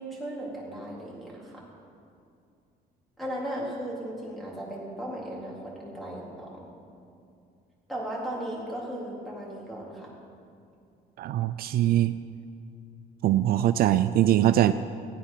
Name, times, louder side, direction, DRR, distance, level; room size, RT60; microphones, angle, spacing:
voice 1, 0.0-1.6 3.2-6.6 7.9-10.1, right 1 dB, ahead, -5 dB, 3.8 m, -36 dB
voice 2, 11.2-12.2 13.2-14.7, right 12 dB, 65° right, 11 dB, 0.4 m, -22 dB
16.5 x 9.3 x 5.8 m, 2.4 s
cardioid pair, 110°, 17 cm